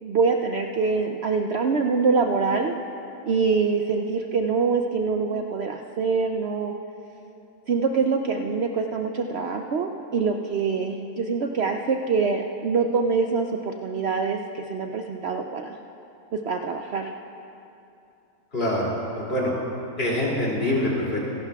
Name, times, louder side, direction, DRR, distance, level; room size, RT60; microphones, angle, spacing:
voice 1, 0.0-2.7 3.2-6.7 7.7-15.8 16.4-17.1, right 5 dB, 75° right, 4 dB, 0.6 m, -24 dB
voice 2, 18.5-19.5 20.0-21.3, left 1 dB, 40° left, -5 dB, 2.8 m, -25 dB
27.0 x 11.5 x 2.3 m, 2.7 s
omnidirectional pair, 1.7 m